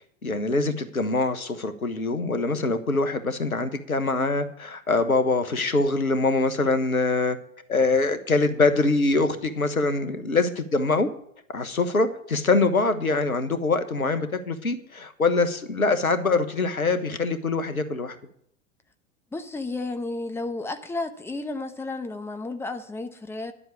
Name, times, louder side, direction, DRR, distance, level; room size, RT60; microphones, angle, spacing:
voice 1, 0.2-7.4 7.7-11.1 11.5-18.2, left 3 dB, 85° left, 1.3 m, -24 dB
voice 2, 19.3-23.5, left 2 dB, 5° left, 1.1 m, -32 dB
11.0 x 7.8 x 8.3 m
figure-of-eight pair, 95°, 42 cm